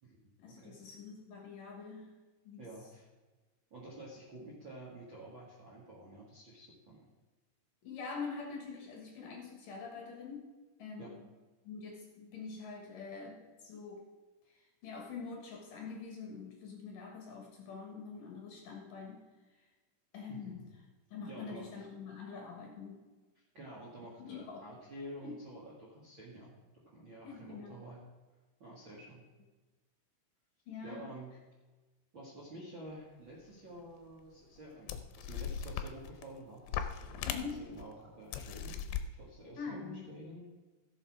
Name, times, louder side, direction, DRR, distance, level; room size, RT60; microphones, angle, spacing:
voice 1, 0.4-2.1 2.4-2.7 7.8-10.4 10.8-11.2 11.6-14.1 14.5-19.2 20.1-20.7 21.1-23.1 24.3-24.6 25.2-25.4 27.2-27.8 30.7-31.1 37.3-37.6 39.5-40.1, left 5 dB, 60° left, 0 dB, 2.7 m, -45 dB
voice 2, 2.6-3.1 3.7-7.0 11.0-11.2 20.3-20.6 21.3-21.9 23.3-26.5 26.8-28.0 28.6-29.2 30.8-31.3 32.1-38.8 39.1-40.4, right 1 dB, 45° right, -5 dB, 1.7 m, -50 dB
sound 1, 33.8-33.9 34.6-34.7 34.9-36.3 36.7-37.8 38.3-39.0, left 8 dB, 80° left, 2.6 m, -39 dB
15.5 x 6.9 x 4.7 m, 1.2 s
omnidirectional pair, 5.0 m